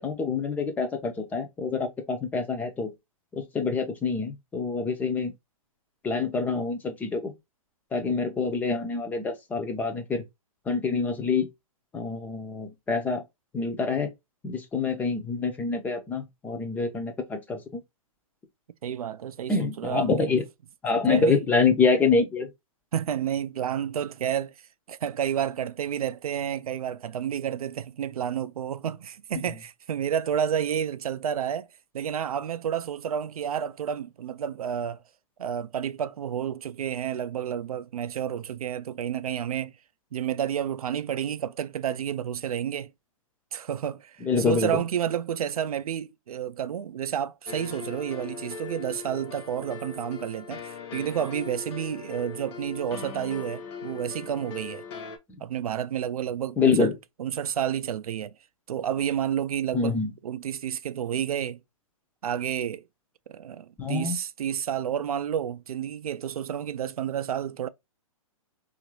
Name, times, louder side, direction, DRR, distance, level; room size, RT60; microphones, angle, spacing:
voice 1, 0.0-2.9 3.5-5.3 6.0-7.3 7.9-10.2 10.7-11.5 11.9-13.2 13.5-14.1 14.4-17.8 19.5-20.4 20.8-22.5 44.2-44.8 56.6-56.9 59.7-60.1 63.8-64.2, left 4 dB, 10° left, 0.4 m, -26 dB
voice 2, 18.8-20.3 21.1-21.4 22.9-24.5 24.9-31.7 31.9-35.0 35.4-39.7 40.1-42.9 43.5-54.8 55.4-56.9 57.2-58.3 58.7-60.0 60.2-61.6 62.2-62.8 63.3-67.7, right 9 dB, 85° right, 0.4 m, -30 dB
sound 1, 47.5-55.2, left 6 dB, 45° left, 0.7 m, -40 dB
2.9 x 2.5 x 3.0 m
hypercardioid pair, 140°, 18 cm